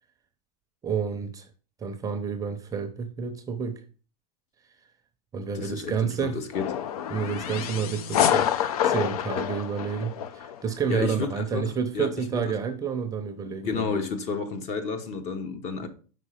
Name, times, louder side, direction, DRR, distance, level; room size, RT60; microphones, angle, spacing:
voice 1, 0.8-1.5 1.8-3.8 5.3-6.4 7.1-8.5 8.8-14.0, right 6 dB, 20° right, 0.6 m, -30 dB
voice 2, 5.5-6.7 10.9-12.5 13.6-15.9, left 5 dB, 40° left, 0.9 m, -31 dB
sound 1, 6.5-10.6, left 9 dB, 75° left, 0.6 m, -27 dB
5.3 x 3.9 x 4.9 m
supercardioid pair, 135°, 19 cm